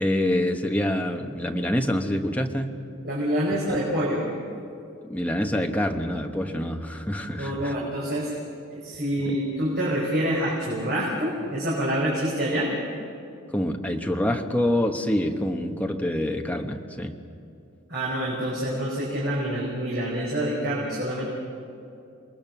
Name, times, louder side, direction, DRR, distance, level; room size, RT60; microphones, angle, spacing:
voice 1, 0.0-2.8 3.7-3.8 5.1-7.7 9.2-9.4 13.5-17.2, left 1 dB, 5° left, 3 dB, 1.1 m, -26 dB
voice 2, 3.0-4.2 7.3-8.3 8.7-12.7 17.9-21.3, equal, 50° right, -5 dB, 4.8 m, -26 dB
27.5 x 20.5 x 6.1 m, 2.6 s
head